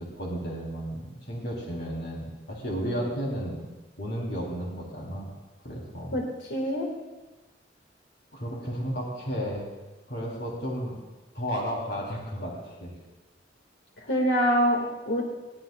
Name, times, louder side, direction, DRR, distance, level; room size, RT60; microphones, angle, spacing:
voice 1, 0.0-3.6 4.0-5.3 5.6-6.1 8.3-9.7 10.1-11.0 11.3-12.9, equal, 60° left, -2 dB, 3.0 m, -33 dB
voice 2, 6.1-6.9 14.0-15.2, equal, 85° left, 0 dB, 1.8 m, -25 dB
20.5 x 16.0 x 2.3 m, 1.2 s
head